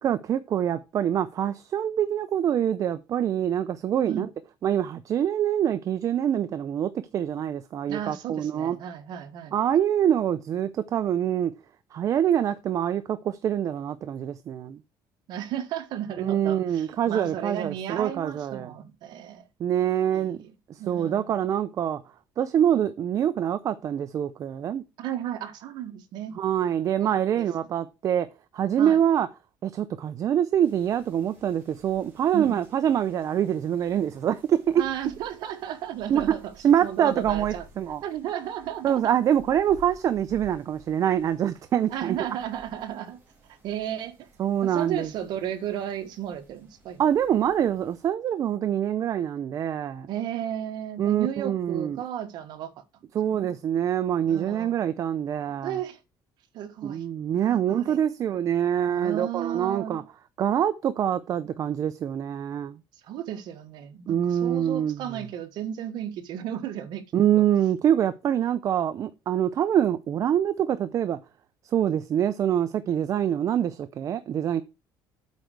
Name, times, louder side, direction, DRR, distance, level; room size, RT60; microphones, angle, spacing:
voice 1, 0.0-4.3 4.6-8.8 9.5-11.5 11.9-14.8 16.2-18.7 19.6-20.4 20.7-22.0 22.4-24.8 26.3-28.3 28.5-29.3 29.6-34.8 36.1-36.2 36.6-38.0 38.8-42.2 44.4-45.1 47.0-50.1 51.0-52.0 53.1-55.8 56.8-60.0 60.4-62.8 64.1-65.0 67.1-71.2 71.7-74.6, right 10 dB, 45° right, 0.6 m, -25 dB
voice 2, 7.9-9.6 15.3-19.5 20.1-20.5 20.8-21.5 25.0-26.4 26.6-27.1 27.3-27.5 28.8-29.0 32.3-32.6 34.8-36.5 36.8-37.7 38.0-39.1 41.9-43.2 43.6-44.3 44.6-47.0 50.1-52.7 53.3-53.5 54.2-54.8 55.6-56.0 56.5-57.0 57.3-58.0 58.9-60.0 63.0-67.0 67.4-67.5, right 10 dB, 65° right, 1.4 m, -34 dB
sound 1, 30.6-48.1, right 4 dB, 25° right, 3.5 m, -52 dB
8.3 x 4.7 x 6.6 m
cardioid pair, 140°, 8 cm